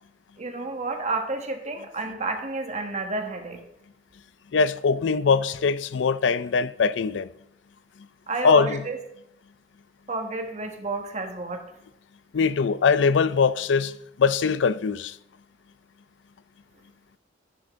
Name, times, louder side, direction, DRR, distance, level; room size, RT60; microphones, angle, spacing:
voice 1, 0.4-3.6 8.3-9.0 10.1-11.7, right 3 dB, 40° right, 1.5 m, -30 dB
voice 2, 4.5-7.3 8.4-8.8 12.3-13.9 14.2-15.2, left 5 dB, 85° left, 0.4 m, -22 dB
12.0 x 10.5 x 3.6 m
head